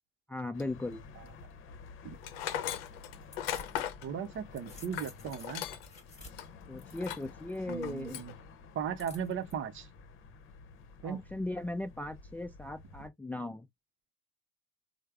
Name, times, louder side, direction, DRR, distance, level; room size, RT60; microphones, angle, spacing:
voice 1, 0.3-1.0 6.7-8.2 11.0-13.7, left 2 dB, 5° left, 0.3 m, -38 dB
sound 1, 0.5-13.1, left 4 dB, 45° left, 0.8 m, -52 dB
sound 2, 2.1-3.9 4.3-7.6 9.0-9.5, left 3 dB, 25° left, 1.3 m, -53 dB
Tools, 2.2-6.0 6.3-6.5 6.9-7.3 7.7-8.3, left 10 dB, 80° left, 0.6 m, -38 dB
voice 2, 4.0-5.7 7.7-8.3 8.7-9.9 11.0-11.3, right 7 dB, 45° right, 0.7 m, -37 dB
3.3 x 2.0 x 3.4 m
hypercardioid pair, 75°, 29 cm